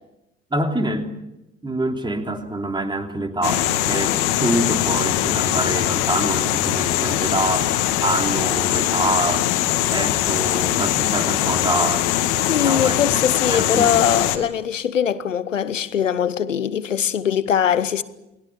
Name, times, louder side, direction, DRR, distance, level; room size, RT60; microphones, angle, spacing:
voice 1, 0.5-1.1 1.6-9.6 9.9-13.0 13.5-13.9, right 2 dB, 10° right, 3.2 m, -26 dB
sound 1, 3.4-14.4, left 13 dB, 60° left, 2.1 m, -21 dB
voice 2, 12.5-18.0, left 8 dB, 80° left, 1.0 m, -21 dB
29.0 x 20.5 x 7.2 m
figure-of-eight pair, 60°, 37 cm